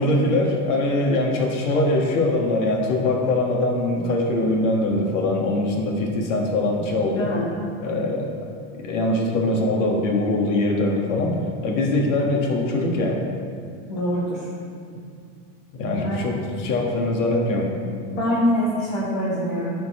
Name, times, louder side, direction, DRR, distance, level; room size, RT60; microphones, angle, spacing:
voice 1, 0.0-7.3 7.8-8.3 8.8-11.4 11.6-13.2 15.7-17.7, left 2 dB, 75° left, 0 dB, 1.5 m, -22 dB
voice 2, 7.1-7.5 13.9-14.5 15.9-16.4 18.1-19.7, equal, 55° left, -9 dB, 2.0 m, -24 dB
10.5 x 4.4 x 4.2 m, 2.3 s
supercardioid pair, 155°, 36 cm